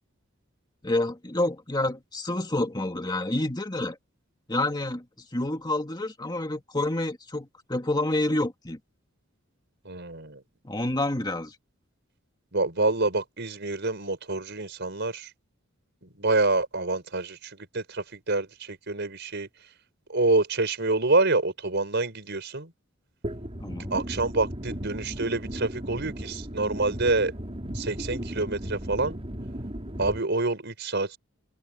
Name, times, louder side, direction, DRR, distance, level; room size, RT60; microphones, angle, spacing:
voice 1, 0.8-4.0 4.5-5.0 5.3-8.8 10.6-11.5 23.6-24.0, left 2 dB, 20° left, 2.2 m, -28 dB
voice 2, 9.9-10.4 12.5-15.3 16.2-17.4 17.7-19.5 20.1-22.7 23.9-27.3 27.8-29.2 30.0-31.2, right 2 dB, 55° right, 5.3 m, -27 dB
sound 1, 23.2-30.2, equal, 30° right, 4.1 m, -36 dB
head